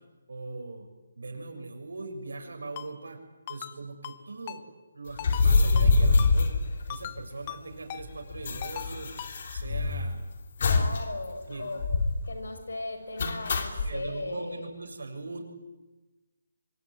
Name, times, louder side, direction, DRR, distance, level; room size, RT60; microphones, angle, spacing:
voice 1, 0.3-0.9 1.2-3.2 3.5-4.6 4.9-6.5 6.9-9.1 9.5-10.2 11.5-11.7 13.8-15.4, right 3 dB, 75° right, 5 dB, 6.9 m, -40 dB
Ringtone, 2.8-2.9 3.5-3.7 4.0-4.2 4.5-4.6 5.2-5.5 5.8-5.9 6.2-6.3 6.9-7.2 7.5-7.6 7.9-8.0 8.6-8.9 9.2-9.3, left 12 dB, 20° left, 1.0 m, -39 dB
sound 1, 5.2-7.4 7.7-7.8 8.0-10.1 10.6-11.0 11.3-11.4 11.8-12.3 13.2-13.9, left 3 dB, 40° left, 3.0 m, -24 dB
voice 2, 10.6-11.8 12.3-14.7, left 2 dB, 90° left, 7 dB, 6.7 m, -37 dB
25.0 x 23.5 x 9.5 m, 1.2 s
hypercardioid pair, 175°, 0 cm